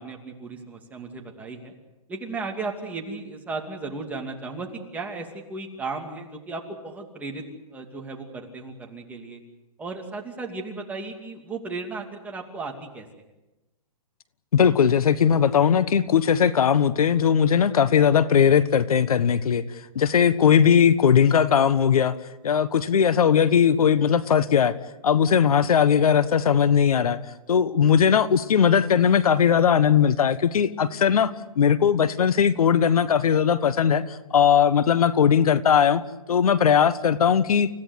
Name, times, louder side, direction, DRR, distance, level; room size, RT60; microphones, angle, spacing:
voice 1, 0.0-1.7 2.1-7.4 7.7-9.4 9.8-13.1, right 3 dB, 10° right, 1 dB, 2.7 m, -35 dB
voice 2, 14.5-19.6 19.9-22.2 22.4-24.7 25.0-27.2 27.5-36.0 36.3-37.7, left 8 dB, 75° left, 15 dB, 1.3 m, -19 dB
30.0 x 16.0 x 8.1 m, 1.0 s
hypercardioid pair, 150°, 19 cm